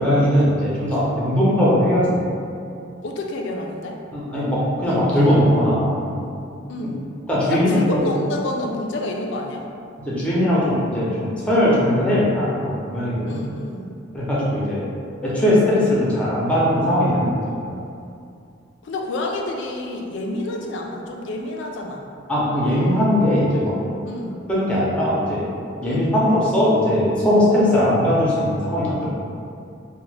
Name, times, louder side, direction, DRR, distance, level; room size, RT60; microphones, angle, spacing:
voice 1, 0.0-2.3 4.1-6.2 7.3-8.1 10.1-13.4 14.1-14.8 15.2-17.4 17.7-17.8 22.3-23.7 24.5-25.5 25.8-29.0, equal, 5° left, -8 dB, 0.5 m, -19 dB
voice 2, 3.0-4.0 6.7-7.0 7.5-9.7 13.2-13.9 18.8-22.0 24.0-24.4 25.8-26.1, left 2 dB, 60° left, 1 dB, 0.3 m, -28 dB
2.7 x 2.1 x 3.2 m, 2.5 s
head